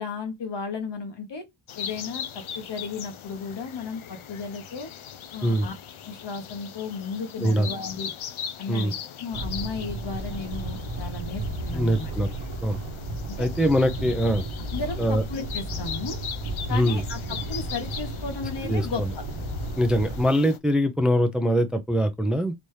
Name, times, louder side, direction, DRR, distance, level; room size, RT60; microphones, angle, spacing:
voice 1, 0.0-1.4 1.8-4.9 5.3-5.7 6.0-8.1 8.6-12.1 13.4-13.5 14.7-16.2 16.7-19.0, left 4 dB, 60° left, 1.4 m, -34 dB
sound 1, 1.7-20.6, left 8 dB, 90° left, 0.7 m, -40 dB
voice 2, 7.4-7.7 8.7-8.9 11.7-12.3 12.6-12.8 13.4-14.5 15.0-15.2 16.7-17.0 18.6-19.1 19.8-22.5, equal, ahead, 0.5 m, -23 dB
sound 2, 9.3-20.2, right 1 dB, 65° right, 1.0 m, -33 dB
4.1 x 3.4 x 3.1 m
wide cardioid pair, 160°, 47 cm